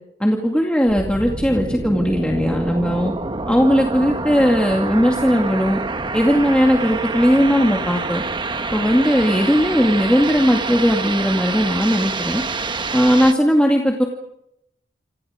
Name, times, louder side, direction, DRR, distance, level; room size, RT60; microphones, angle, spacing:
voice 1, 0.2-3.1 3.5-5.8 6.1-8.2 8.7-12.4 12.9-14.0, equal, 5° left, 0 dB, 2.3 m, -18 dB
sound 1, 0.9-13.3, right 3 dB, 25° right, 1.1 m, -27 dB
28.0 x 28.0 x 5.1 m, 0.80 s
head